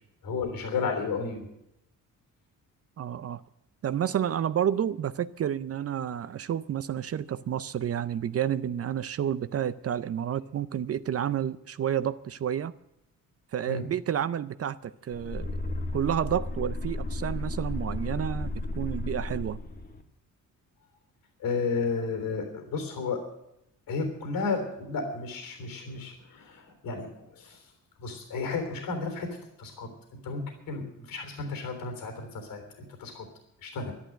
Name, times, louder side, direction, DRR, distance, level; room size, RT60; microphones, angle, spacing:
voice 1, 0.2-1.5 13.7-13.8 21.4-23.2 23.9-27.6 28.0-29.3 29.6-29.9 30.2-32.6 33.0-33.3 33.6-33.9, left 4 dB, 90° left, 3.5 m, -32 dB
voice 2, 3.0-3.4 3.8-12.7 13.5-15.5 15.9-19.6, right 9 dB, 45° right, 0.5 m, -30 dB
sound 1, 15.1-20.0, left 2 dB, 25° left, 1.5 m, -34 dB
11.5 x 11.0 x 9.1 m
cardioid pair, 110°, 33 cm